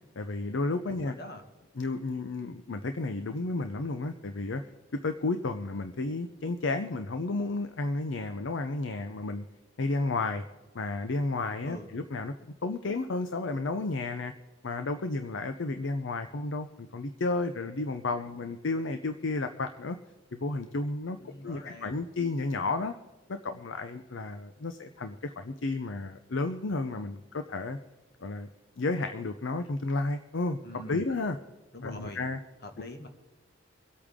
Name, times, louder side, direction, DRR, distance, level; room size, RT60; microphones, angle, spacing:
voice 1, 0.2-1.1 1.8-4.6 5.0-9.4 9.8-10.4 10.7-12.3 12.6-14.3 14.6-20.0 20.3-22.9 23.3-27.8 28.2-28.5 28.8-31.4 31.8-32.4, left 3 dB, 70° left, 8 dB, 0.7 m, -32 dB
voice 2, 0.9-1.4 11.6-11.9 21.2-22.0 30.6-31.0 31.7-32.2 32.6-33.1, left 1 dB, 55° left, 5 dB, 1.7 m, -44 dB
24.5 x 8.6 x 3.7 m, 1.2 s
head